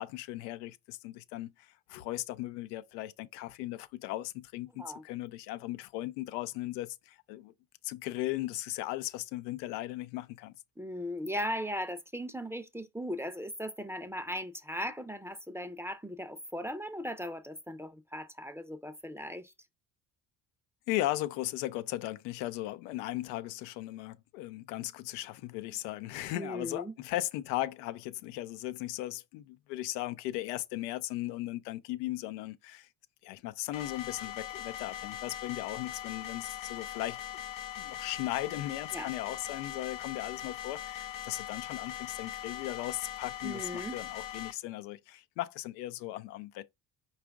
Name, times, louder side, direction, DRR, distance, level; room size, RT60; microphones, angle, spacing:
voice 1, 0.0-7.5 7.8-10.5 20.9-32.9 33.2-37.2 37.8-46.7, left 16 dB, 80° left, 0.6 m, -37 dB
voice 2, 4.7-5.0 10.8-19.5 26.3-26.9 38.9-39.1 43.4-44.0, equal, 5° right, 0.6 m, -38 dB
sound 1, 33.7-44.5, left 11 dB, 40° left, 0.8 m, -41 dB
4.9 x 2.5 x 3.4 m
hypercardioid pair, 55°, 50 cm